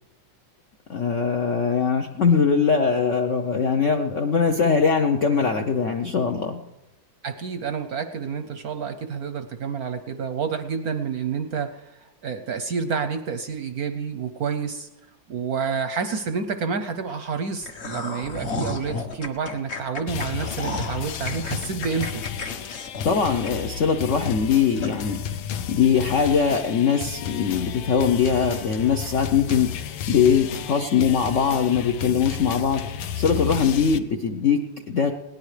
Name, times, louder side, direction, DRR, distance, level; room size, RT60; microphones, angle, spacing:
voice 1, 0.9-6.6 23.0-25.2 25.7-32.9 33.1-35.1, left 6 dB, 65° left, 4 dB, 0.7 m, -21 dB
voice 2, 7.2-14.9 15.3-22.2, right 6 dB, 65° right, 8 dB, 1.0 m, -29 dB
sound 1, 17.6-23.9 24.3-24.4 24.8-25.0, left 2 dB, 40° left, 1.2 m, -33 dB
sound 2, 20.1-34.0, left 9 dB, 85° left, 1.5 m, -32 dB
20.0 x 18.0 x 3.3 m, 1.0 s
omnidirectional pair, 2.2 m